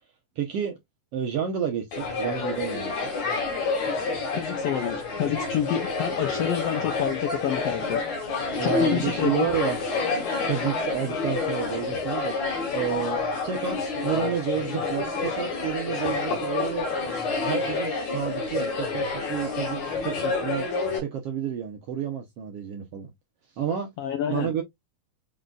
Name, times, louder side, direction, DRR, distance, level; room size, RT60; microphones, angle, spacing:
voice 1, 0.4-0.8 1.1-3.0 8.5-9.8 10.4-12.4 12.7-16.9 17.4-20.7 21.0-23.1 23.6-23.9 24.3-24.6, right 9 dB, 75° right, 1.4 m, -30 dB
sound 1, 1.9-21.0, left 4 dB, 60° left, 2.7 m, -28 dB
voice 2, 4.3-9.5 24.0-24.5, left 9 dB, 80° left, 1.4 m, -29 dB
5.4 x 3.7 x 2.4 m
omnidirectional pair, 3.5 m